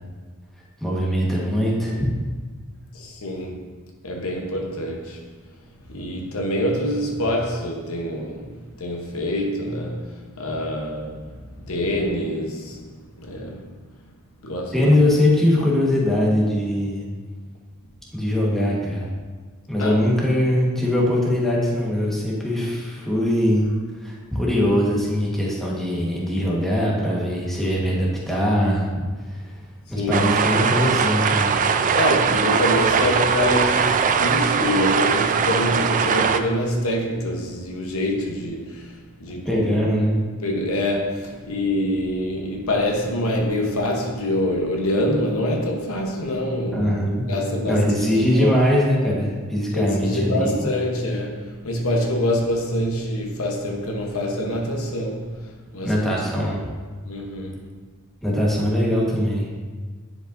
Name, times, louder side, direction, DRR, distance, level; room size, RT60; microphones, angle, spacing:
voice 1, 0.8-2.1 14.7-17.0 18.1-19.1 19.7-23.7 24.0-28.9 29.3-29.6 29.9-31.5 39.4-40.2 46.7-47.2 47.7-50.7 55.8-56.6 58.2-59.5, left 1 dB, ahead, 1.4 m, -21 dB
voice 2, 2.9-3.6 4.0-5.2 5.9-11.4 11.6-12.9 13.2-13.6 14.4-14.9 19.8-20.0 29.9-30.3 31.9-38.9 39.2-39.7 40.4-46.9 47.3-47.8 48.3-48.5 49.7-55.3 55.7-55.9 56.4-56.5 57.0-57.7, left 1 dB, 70° left, 1.0 m, -25 dB
sound 1, 30.1-36.4, right 6 dB, 35° right, 0.4 m, -20 dB
10.0 x 5.2 x 2.6 m
head